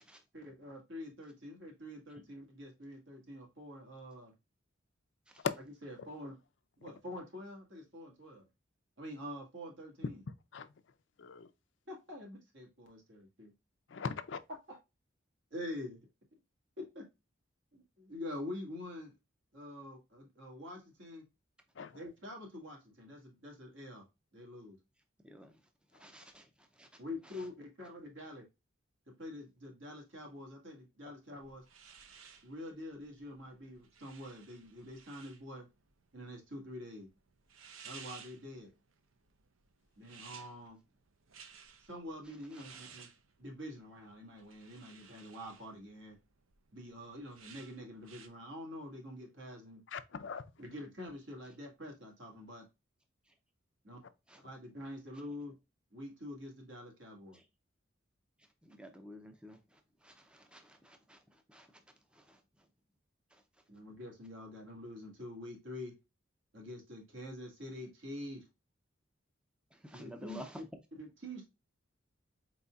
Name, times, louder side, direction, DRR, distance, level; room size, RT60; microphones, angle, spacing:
voice 1, 0.3-4.3 5.8-6.4 6.8-8.5 9.0-10.2 11.9-13.5 14.7-14.8 15.5-16.1 16.8-17.1 17.7-19.1 19.5-21.3 21.9-24.0 24.3-24.8 27.0-28.5 29.1-31.7 32.4-35.7 36.1-37.1 37.8-38.7 40.0-40.8 41.8-43.1 43.4-46.2 46.7-49.8 50.6-52.7 53.8-54.0 54.4-55.5 55.9-57.4 63.7-66.0 66.5-68.5 69.9-70.4 71.0-71.5, left 1 dB, 70° right, 1.8 m, -46 dB
voice 2, 11.2-11.5 13.9-14.4 21.7-22.0 25.9-26.1 49.9-50.4, left 5 dB, 65° left, 0.5 m, -39 dB
voice 3, 25.2-25.6 25.9-27.5 42.2-42.9 53.3-53.4 54.3-54.4 57.3-57.5 58.6-61.8 62.1-62.7 63.3-63.4 69.7-70.8, equal, 5° right, 0.4 m, -53 dB
sound 1, 31.4-48.3, right 7 dB, 90° right, 0.6 m, -57 dB
4.4 x 4.0 x 2.3 m
head